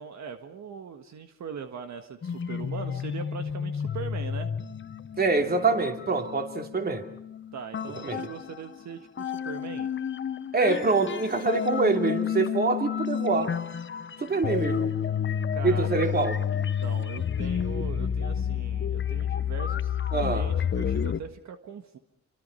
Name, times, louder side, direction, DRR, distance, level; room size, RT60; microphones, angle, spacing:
voice 1, 0.0-4.5 7.5-9.9 15.5-16.1 16.5-22.0, right 6 dB, 70° right, 7 dB, 1.7 m, -40 dB
sound 1, 2.2-8.8 9.2-21.2, left 8 dB, 40° left, 1.0 m, -30 dB
voice 2, 5.2-7.1 8.0-8.2 10.5-13.5 14.2-14.9 15.6-16.4 20.1-20.5, right 3 dB, 35° right, 5 dB, 3.0 m, -25 dB
28.5 x 25.0 x 5.7 m, 0.66 s
cardioid pair, 120°, 29 cm